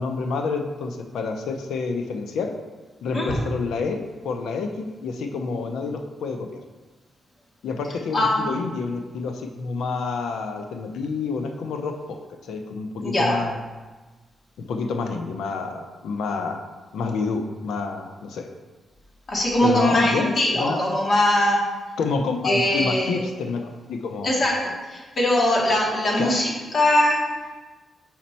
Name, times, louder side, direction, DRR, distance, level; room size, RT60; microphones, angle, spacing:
voice 1, 0.0-2.5 3.0-6.6 7.6-12.2 12.5-13.6 14.6-16.6 16.9-18.5 19.6-20.8 22.0-23.6 23.9-24.4 26.2-26.4, left 4 dB, 90° left, 4 dB, 0.6 m, -28 dB
voice 2, 8.1-8.7 13.0-13.4 19.3-21.6 22.4-23.2 24.2-24.5 24.9-27.2, left 1 dB, 50° left, -3 dB, 2.0 m, -21 dB
5.8 x 5.1 x 4.3 m, 1.3 s
cardioid pair, 85°, 0 cm